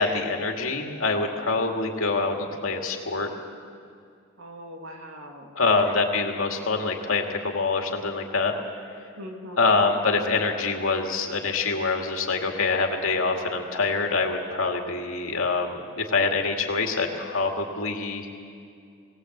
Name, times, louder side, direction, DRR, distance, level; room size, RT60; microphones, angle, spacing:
voice 1, 0.0-3.3 5.6-8.5 9.6-18.3, left 3 dB, 80° left, 2 dB, 2.3 m, -25 dB
voice 2, 4.4-5.9 9.2-9.9, equal, 80° right, 2 dB, 2.5 m, -40 dB
20.5 x 18.5 x 8.0 m, 2.3 s
head